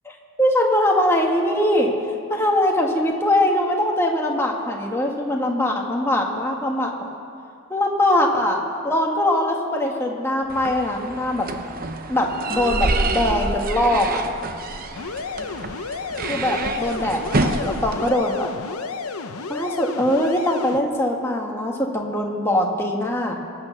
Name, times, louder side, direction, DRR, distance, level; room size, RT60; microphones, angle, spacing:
voice 1, 0.0-1.9 2.3-6.9 7.7-11.5 12.1-14.2 16.3-18.5 19.5-23.3, left 1 dB, 10° left, 0 dB, 1.6 m, -22 dB
sound 1, 10.5-18.1, right 2 dB, 40° right, 0.8 m, -27 dB
sound 2, 15.0-20.8, left 4 dB, 80° left, 0.8 m, -32 dB
23.5 x 9.0 x 6.5 m, 2.4 s
head